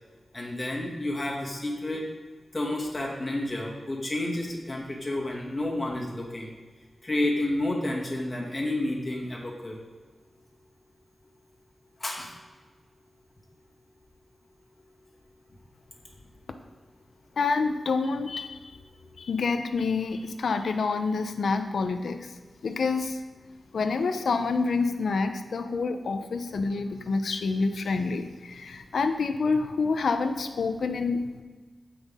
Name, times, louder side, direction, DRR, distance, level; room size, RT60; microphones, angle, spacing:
voice 1, 0.3-2.0 2.5-6.5 7.0-9.8 12.0-12.3, left 1 dB, 25° left, -3 dB, 2.3 m, -30 dB
voice 2, 17.4-18.8 19.2-22.3 22.6-23.2 23.7-31.4, left 4 dB, 90° left, 8 dB, 0.8 m, -27 dB
15.5 x 6.1 x 3.7 m, 1.4 s
wide cardioid pair, 115°, 0 cm